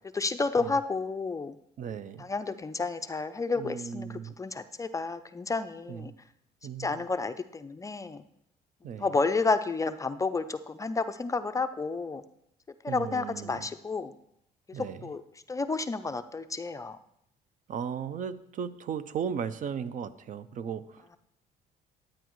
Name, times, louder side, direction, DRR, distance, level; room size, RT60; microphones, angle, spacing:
voice 1, 0.1-1.6 2.2-6.1 6.8-8.2 9.0-12.2 12.8-14.1 15.0-15.2 15.5-17.0, left 3 dB, 20° left, 10 dB, 0.4 m, -31 dB
voice 2, 1.8-2.3 3.6-4.3 5.9-6.1 6.6-7.0 8.8-9.1 12.9-13.7 14.7-15.1 17.7-21.2, right 7 dB, 50° right, 14 dB, 0.5 m, -36 dB
11.5 x 8.8 x 3.1 m, 0.76 s
cardioid pair, 110°, 17 cm